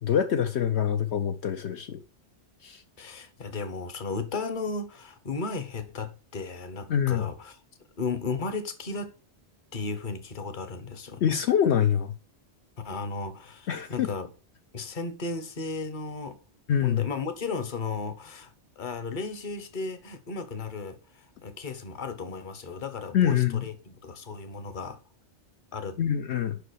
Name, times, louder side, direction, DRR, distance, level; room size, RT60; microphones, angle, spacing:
voice 1, 0.0-2.0 2.6-2.8 6.9-7.3 11.2-12.1 13.7-14.1 16.7-17.0 23.1-23.7 26.0-26.6, left 9 dB, 75° left, 1.0 m, -25 dB
voice 2, 3.0-7.5 8.0-9.2 9.7-11.4 12.8-14.3 14.7-16.4 16.8-25.0 25.7-26.0, left 4 dB, 45° left, 1.2 m, -35 dB
5.6 x 5.0 x 6.3 m
omnidirectional pair, 1.2 m